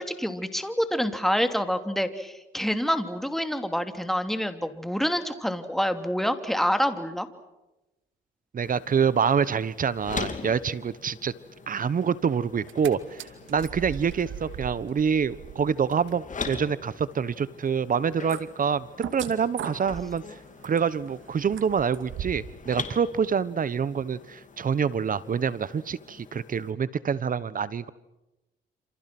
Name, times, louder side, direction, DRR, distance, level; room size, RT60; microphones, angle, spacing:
voice 1, 0.0-7.3, equal, ahead, 8 dB, 2.9 m, -27 dB
voice 2, 8.5-11.3 11.7-13.2 13.5-18.9 19.1-20.2 20.6-27.9, right 6 dB, 45° right, 18 dB, 1.2 m, -26 dB
sound 1, 8.6-26.7, left 5 dB, 40° left, 3.1 m, -43 dB
sound 2, 12.5-12.9 13.2-22.6 22.9-23.0, right 9 dB, 75° right, 2.5 m, -40 dB
28.5 x 28.0 x 6.1 m, 0.98 s
cardioid pair, 90°, 20 cm